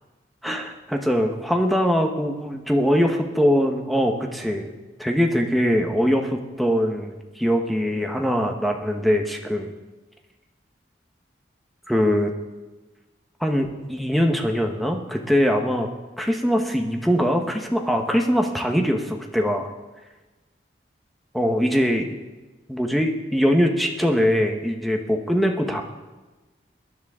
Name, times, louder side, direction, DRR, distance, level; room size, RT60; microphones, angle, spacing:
voice 1, 0.4-9.7 11.9-12.3 13.4-15.9 16.2-19.7 21.3-22.2 22.7-25.8, equal, ahead, 2 dB, 1.1 m, -22 dB
22.0 x 10.5 x 3.7 m, 1.2 s
head